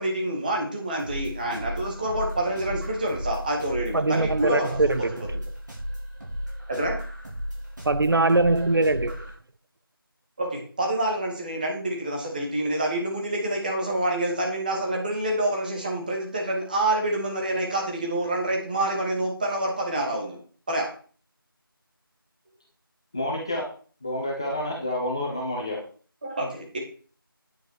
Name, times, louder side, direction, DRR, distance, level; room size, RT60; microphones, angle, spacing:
voice 1, 0.0-5.3 6.7-7.0 10.4-20.4 20.7-20.9 26.2-26.8, right 1 dB, 20° right, 2.0 m, -27 dB
sound 1, 1.0-9.3, equal, 55° right, 3.8 m, -35 dB
voice 2, 3.9-5.1 7.8-9.3, right 2 dB, 70° right, 0.7 m, -22 dB
voice 3, 23.1-23.7 24.0-25.8, left 1 dB, 10° left, 0.7 m, -29 dB
9.5 x 7.9 x 4.4 m
figure-of-eight pair, 170°, 12 cm